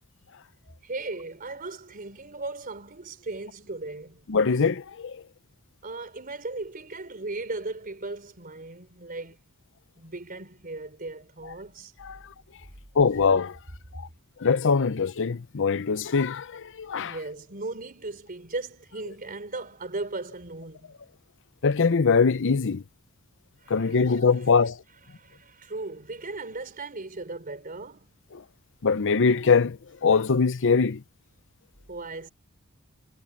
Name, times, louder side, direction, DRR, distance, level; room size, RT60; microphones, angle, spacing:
voice 1, 0.8-4.2 5.8-9.4 10.0-11.9 17.0-20.9 23.6-24.2 25.1-28.1 31.9-32.3, right 2 dB, 40° right, 3.8 m, -37 dB
voice 2, 4.3-5.2 12.0-12.2 13.0-13.6 14.4-17.2 21.6-22.8 23.7-24.8 28.8-29.8 30.0-31.0, left 5 dB, 60° left, 0.7 m, -22 dB
head